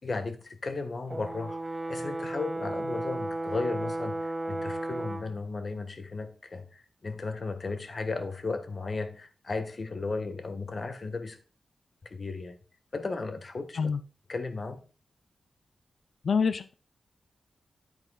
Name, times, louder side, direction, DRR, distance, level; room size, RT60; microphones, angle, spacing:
voice 1, 0.0-11.4 12.0-12.6 12.9-13.8 14.3-14.8, left 3 dB, 50° left, 1.5 m, -35 dB
Brass instrument, 1.1-5.3, right 2 dB, 20° right, 1.0 m, -34 dB
voice 2, 16.2-16.7, left 5 dB, 65° left, 0.5 m, -26 dB
9.6 x 9.0 x 2.3 m
wide cardioid pair, 85°, 0 cm